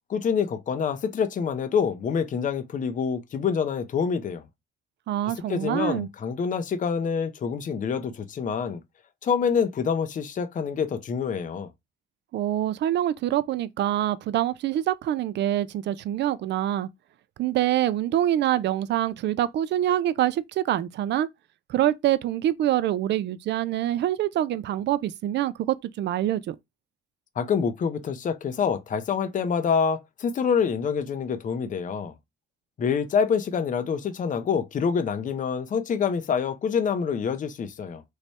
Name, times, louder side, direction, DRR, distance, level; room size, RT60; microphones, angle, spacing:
voice 1, 0.1-4.4 5.5-8.8 9.2-11.7 27.4-32.1 32.8-38.0, left 6 dB, 40° left, 0.5 m, -26 dB
voice 2, 5.1-6.1 12.3-16.9 17.4-21.3 21.7-26.6, right 12 dB, 60° right, 0.4 m, -25 dB
3.2 x 2.1 x 4.1 m
cardioid pair, 90°, 20 cm